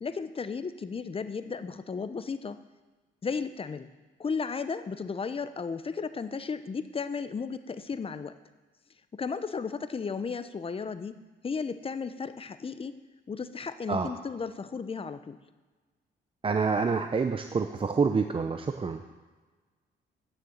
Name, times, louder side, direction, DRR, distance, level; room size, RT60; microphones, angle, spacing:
voice 1, 0.0-2.6 3.2-3.9 4.2-8.3 9.1-13.0 13.3-15.4, left 5 dB, 30° left, 12 dB, 0.6 m, -34 dB
voice 2, 16.4-19.0, right 5 dB, 25° right, 6 dB, 0.6 m, -27 dB
9.7 x 6.7 x 7.2 m, 1.3 s
cardioid pair, 90°, 20 cm